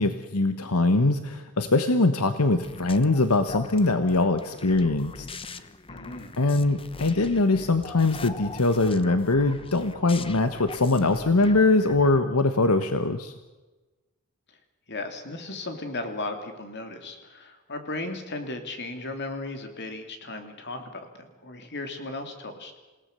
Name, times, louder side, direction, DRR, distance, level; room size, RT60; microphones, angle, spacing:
voice 1, 0.0-5.7 6.4-13.3, left 2 dB, 80° left, 9 dB, 1.2 m, -22 dB
sound 1, 2.6-12.2, left 3 dB, 25° left, 0.9 m, -42 dB
voice 2, 5.9-6.3 14.9-22.8, left 2 dB, 50° left, 6 dB, 3.1 m, -36 dB
28.0 x 17.5 x 6.8 m, 1.2 s
head